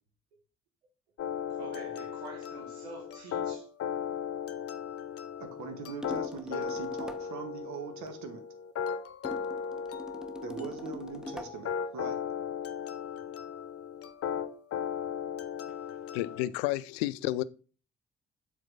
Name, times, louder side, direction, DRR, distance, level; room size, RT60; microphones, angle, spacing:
sound 1, 1.2-16.5, left 8 dB, 45° left, 0.9 m, -37 dB
voice 1, 1.5-3.7, right 3 dB, 75° right, 1.2 m, -46 dB
voice 2, 5.4-8.4 10.4-12.2, right 5 dB, 60° right, 1.7 m, -41 dB
sound 2, 6.0-7.4 9.2-11.6, left 1 dB, ahead, 0.9 m, -43 dB
voice 3, 16.1-17.4, left 16 dB, 70° left, 0.5 m, -31 dB
7.7 x 4.3 x 5.5 m
figure-of-eight pair, 40°, 32 cm